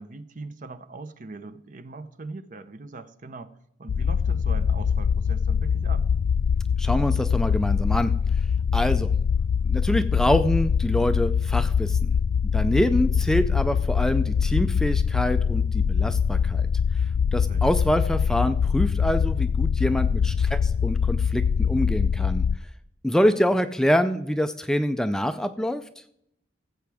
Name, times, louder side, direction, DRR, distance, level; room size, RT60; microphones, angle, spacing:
voice 1, 0.0-6.1 17.5-17.7 23.2-23.6, right 3 dB, 45° right, 12 dB, 0.7 m, -41 dB
sound 1, 3.9-22.6, left 6 dB, 90° left, 0.3 m, -23 dB
voice 2, 6.8-8.1 8.7-9.1 9.6-12.1 12.5-16.7 17.3-22.4 23.0-25.8, equal, 5° left, 9 dB, 0.3 m, -25 dB
16.5 x 7.9 x 3.5 m, 0.75 s
head